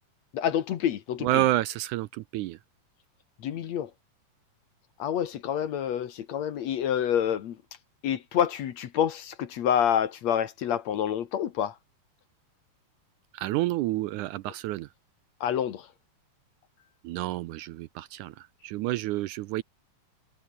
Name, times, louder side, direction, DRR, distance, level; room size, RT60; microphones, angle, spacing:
voice 1, 0.3-1.5 3.4-3.9 5.0-7.6 8.0-11.8 14.5-14.6 15.4-15.9, left 9 dB, 60° left, 2.3 m, -28 dB
voice 2, 1.2-2.6 13.3-14.9 17.0-18.3 18.6-19.6, right 16 dB, 80° right, 1.9 m, -29 dB
omnidirectional pair, 3.9 m